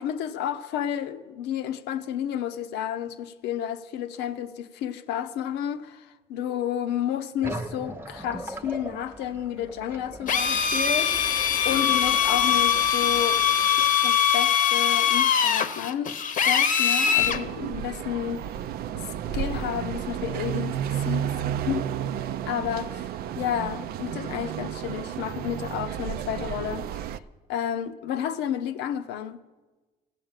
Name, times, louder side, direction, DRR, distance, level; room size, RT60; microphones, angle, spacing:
voice 1, 0.0-13.5 13.8-16.2 16.4-18.6 18.9-19.1 19.3-21.4 21.7-21.9 22.5-23.1 23.4-27.2 27.5-29.4, left 10 dB, 90° left, 0.8 m, -31 dB
sound 1, 7.4-14.6, right 1 dB, 15° right, 0.7 m, -40 dB
Drill, 10.3-17.4, left 8 dB, 50° left, 0.8 m, -22 dB
sound 2, 17.2-27.2, right 10 dB, 65° right, 0.5 m, -32 dB
15.0 x 7.9 x 8.8 m
cardioid pair, 110°, 17 cm